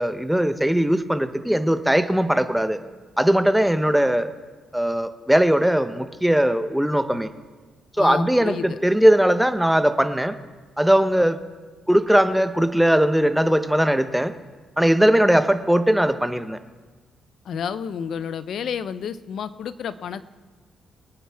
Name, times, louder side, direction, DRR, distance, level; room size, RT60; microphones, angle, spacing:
voice 1, 0.0-2.8 3.2-4.3 4.7-7.3 8.0-10.4 10.8-11.4 11.9-14.3 14.8-16.6, right 1 dB, 5° right, 10 dB, 0.7 m, -19 dB
voice 2, 8.0-8.8 17.4-20.2, left 7 dB, 70° left, 14 dB, 0.6 m, -30 dB
23.5 x 9.4 x 3.5 m, 1.3 s
cardioid pair, 100°, 0 cm